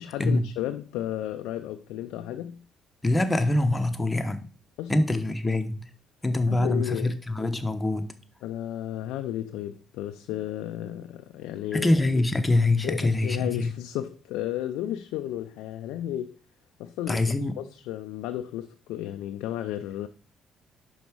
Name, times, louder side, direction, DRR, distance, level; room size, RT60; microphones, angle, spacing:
voice 1, 0.0-2.6 4.8-4.9 6.5-7.2 8.4-11.9 12.8-16.3 16.8-20.1, left 12 dB, 85° left, 0.4 m, -33 dB
voice 2, 3.0-4.5 4.9-5.9 6.2-8.1 11.7-13.7 17.1-17.6, left 2 dB, 20° left, 0.9 m, -24 dB
5.3 x 4.4 x 4.6 m
supercardioid pair, 75°, 0 cm